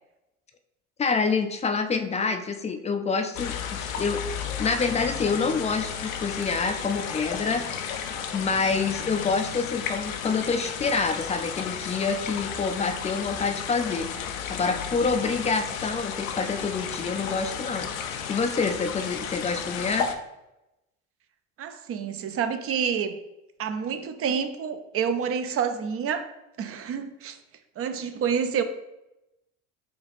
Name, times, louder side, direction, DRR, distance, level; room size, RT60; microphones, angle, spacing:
voice 1, 1.0-4.2 4.6-7.7 8.3-14.1 14.5-17.9 18.3-20.1, left 4 dB, 20° left, 7 dB, 0.4 m, -27 dB
sound 1, 3.3-20.1, left 7 dB, 85° left, 0.6 m, -33 dB
voice 2, 21.6-23.1 23.6-26.3 26.6-27.4 27.8-28.6, right 7 dB, 35° right, 9 dB, 0.5 m, -28 dB
5.0 x 2.4 x 3.4 m, 0.91 s
hypercardioid pair, 75°, 40 cm